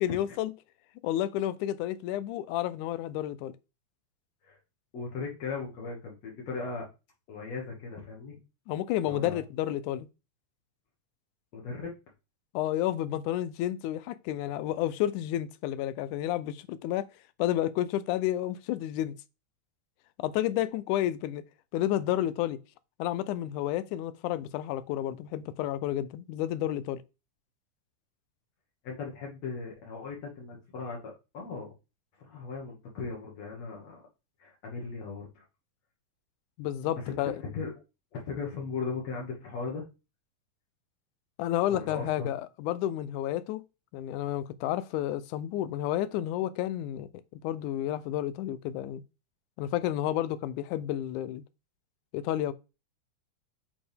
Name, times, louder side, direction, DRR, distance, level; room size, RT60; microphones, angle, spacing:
voice 1, 0.0-0.5 1.0-3.5 8.7-10.1 12.5-17.1 17.4-19.1 20.2-21.4 21.7-22.6 23.0-27.0 36.6-37.3 41.4-43.6 43.9-47.1 47.4-49.0 49.6-51.4 52.1-52.5, left 13 dB, 90° left, 2.1 m, -31 dB
voice 2, 4.9-6.9 7.3-8.4 9.0-9.4 11.5-11.9 28.8-31.0 31.3-31.7 32.2-34.0 34.4-35.4 37.0-37.2 37.5-37.7 38.1-39.9 41.7-42.3, left 4 dB, 60° left, 2.5 m, -37 dB
8.6 x 4.3 x 3.4 m
omnidirectional pair, 3.5 m